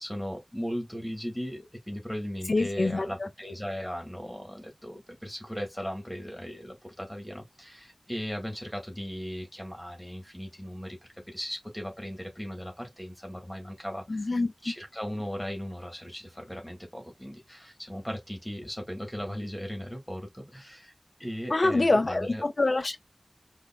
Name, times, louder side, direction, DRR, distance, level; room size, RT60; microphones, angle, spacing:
voice 1, 0.0-1.6 1.9-4.4 4.8-6.7 7.0-7.3 8.1-10.9 11.3-12.7 13.0-14.0 14.6-16.2 16.5-17.3 17.9-20.2 21.2-22.4, equal, 10° left, 1.8 m, -36 dB
voice 2, 2.5-3.1 14.1-14.5 21.5-23.0, left 2 dB, 65° left, 0.5 m, -25 dB
5.2 x 2.6 x 2.3 m
wide cardioid pair, 60°, 0 cm